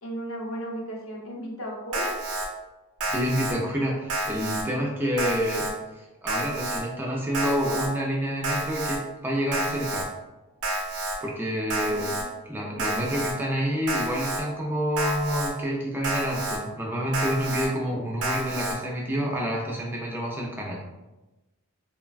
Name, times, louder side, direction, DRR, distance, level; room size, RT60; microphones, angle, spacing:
voice 1, 0.0-2.1 11.7-12.3, equal, 65° left, -2 dB, 0.7 m, -35 dB
Alarm, 1.9-2.5 3.0-3.5 4.1-4.6 5.2-5.7 6.3-6.8 7.3-7.9 8.4-9.0 9.5-10.1 10.6-11.2 11.7-12.2 12.8-13.3 13.9-14.4 15.0-15.5 16.0-16.6 17.1-17.7 18.2-18.7, right 2 dB, 85° right, 0.6 m, -29 dB
voice 2, 3.1-5.7 6.0-9.0 9.2-10.1 11.2-12.1 12.5-20.8, equal, 10° right, -2 dB, 0.4 m, -28 dB
3.1 x 2.2 x 2.3 m, 1.1 s
head